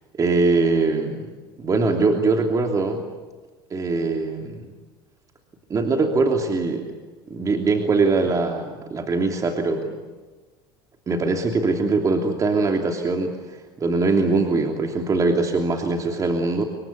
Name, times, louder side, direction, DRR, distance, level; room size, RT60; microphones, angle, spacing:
voice 1, 0.1-3.0 3.7-4.7 5.7-6.8 7.3-10.0 11.1-16.6, right 3 dB, 30° right, 3 dB, 3.0 m, -22 dB
27.5 x 23.5 x 8.4 m, 1.3 s
supercardioid pair, 95°, 12 cm